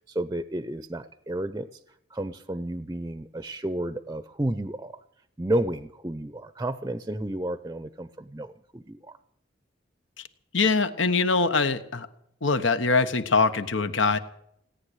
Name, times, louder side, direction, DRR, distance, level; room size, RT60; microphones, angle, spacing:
voice 1, 0.1-1.8 2.1-5.0 5.4-9.2, right 1 dB, 15° right, 12 dB, 0.6 m, -31 dB
voice 2, 10.5-12.1 12.4-14.2, left 4 dB, 85° left, 11 dB, 1.3 m, -23 dB
18.0 x 10.0 x 8.1 m, 0.74 s
head